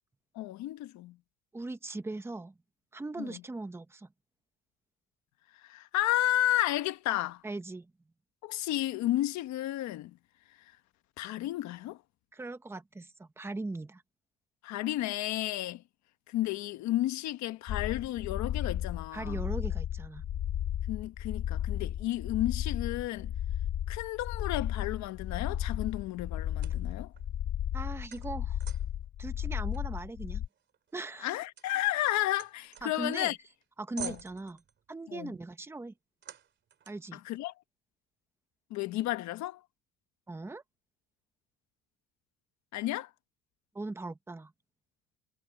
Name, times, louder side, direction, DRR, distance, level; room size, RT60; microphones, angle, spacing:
voice 1, 0.3-1.2 3.2-3.4 5.6-7.4 8.4-10.2 11.2-12.0 14.6-15.8 16.3-19.4 20.9-23.3 23.9-27.1 31.2-33.4 34.0-34.2 35.1-35.3 37.1-37.5 38.7-39.6 42.7-43.1, left 15 dB, 70° left, 1.4 m, -32 dB
voice 2, 1.5-2.5 2.9-4.1 7.4-7.9 12.3-14.0 19.1-20.3 27.7-28.6 29.2-30.4 30.9-31.4 32.8-33.4 33.8-34.6 34.9-35.9 36.9-37.2 40.3-40.6 43.7-44.5, right 2 dB, 10° right, 1.0 m, -39 dB
sound 1, 17.7-30.5, left 10 dB, 50° left, 1.6 m, -34 dB
sound 2, 24.0-24.9 25.4-29.1 29.7-33.3 33.6-33.7 34.0-34.8 36.2-37.1, right 9 dB, 40° right, 3.0 m, -49 dB
cardioid pair, 145°, 29 cm